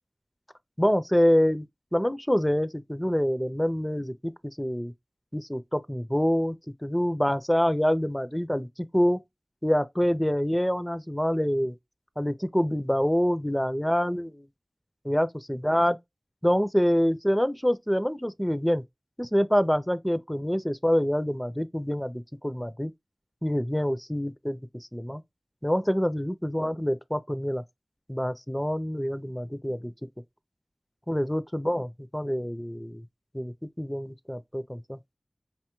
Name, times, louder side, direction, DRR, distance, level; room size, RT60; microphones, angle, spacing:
voice 1, 0.8-1.7 1.9-4.9 5.3-6.6 6.8-8.7 8.9-9.2 9.6-11.7 12.2-14.4 15.0-16.0 16.4-18.8 19.2-22.9 23.4-24.6 24.9-25.2 25.6-27.6 28.1-29.9 31.1-33.0 33.3-35.0, equal, 10° left, 0.4 m, -26 dB
5.4 x 2.2 x 2.9 m
wide cardioid pair, 45°, 0 cm